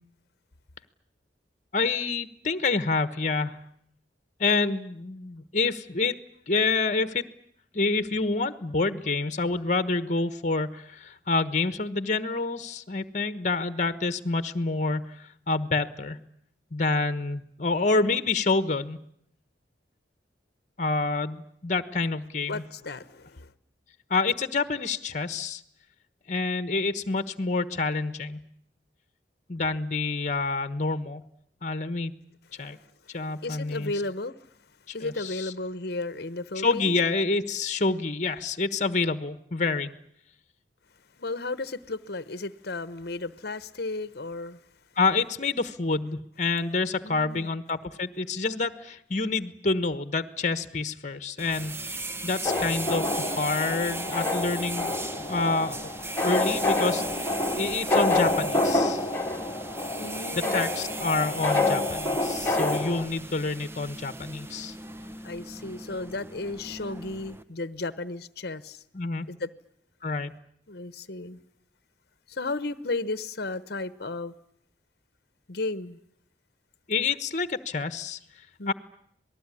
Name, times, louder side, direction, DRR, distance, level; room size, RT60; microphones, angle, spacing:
voice 1, 1.7-3.6 4.4-6.2 6.5-7.2 7.7-16.2 16.7-19.0 20.8-22.6 24.1-25.6 26.3-28.4 29.5-31.2 31.6-32.1 32.6-32.8 33.1-33.9 34.9-35.5 36.6-39.9 45.0-54.9 55.2-55.9 56.2-59.1 60.3-64.7 68.9-69.3 70.0-70.3 76.9-78.2 78.7-78.8, left 3 dB, 45° left, 1.2 m, -28 dB
voice 2, 22.5-23.5 32.6-32.9 33.4-34.5 34.9-36.9 41.2-44.6 47.0-47.5 60.0-60.6 65.2-68.8 69.3-69.5 70.7-71.4 72.3-74.3 75.5-76.0 78.6-78.7, left 2 dB, 60° left, 1.0 m, -34 dB
sound 1, 51.4-67.4, right 2 dB, 15° right, 1.0 m, -38 dB
sound 2, 52.4-63.0, left 2 dB, 10° left, 2.3 m, -27 dB
27.0 x 19.5 x 9.9 m
head